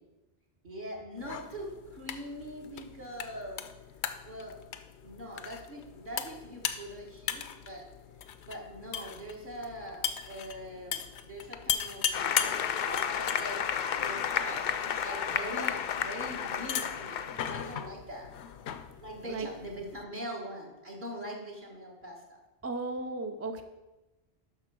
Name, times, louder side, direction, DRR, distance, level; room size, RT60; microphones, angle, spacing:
voice 1, 0.6-3.6 4.2-4.6 5.0-7.9 8.5-12.5 12.8-13.6 13.9-18.3 19.0-22.2, equal, 50° right, -3 dB, 1.7 m, -42 dB
sound 1, 1.2-20.0, left 8 dB, 80° left, 0.9 m, -39 dB
Applause, 12.1-17.8, left 8 dB, 55° left, 0.5 m, -32 dB
voice 2, 22.6-23.6, right 3 dB, 25° right, 7 dB, 0.3 m, -35 dB
11.0 x 3.8 x 6.1 m, 1.1 s
omnidirectional pair, 1.1 m